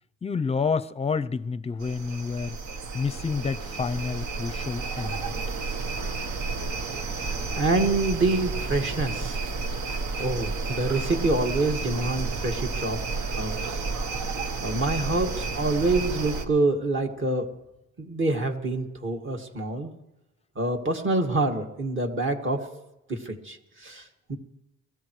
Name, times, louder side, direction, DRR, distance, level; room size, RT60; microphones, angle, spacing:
voice 1, 0.2-2.6 2.9-5.3, left 5 dB, 20° left, 0.6 m, -29 dB
sound 1, 1.8-16.4, right 4 dB, 70° right, 1.4 m, -31 dB
voice 2, 7.2-9.4 10.2-13.8 14.6-17.5 18.0-19.9 20.6-22.8 23.1-24.4, right 2 dB, 40° right, 2.1 m, -27 dB
24.0 x 14.0 x 3.3 m
cardioid pair, 90°, 30 cm